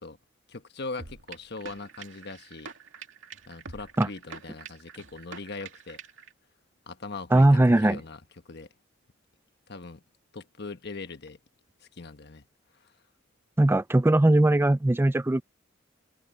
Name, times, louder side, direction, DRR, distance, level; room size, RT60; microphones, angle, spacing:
voice 1, 0.5-2.7 3.4-6.0 6.9-8.7 9.7-10.0 10.3-11.4 11.8-12.5 12.7-12.9, left 3 dB, 60° left, 1.3 m, -40 dB
sound 1, 1.0-6.3, right 5 dB, 80° right, 2.5 m, -45 dB
voice 2, 7.3-8.0 13.6-15.4, right 1 dB, 10° right, 0.4 m, -20 dB
head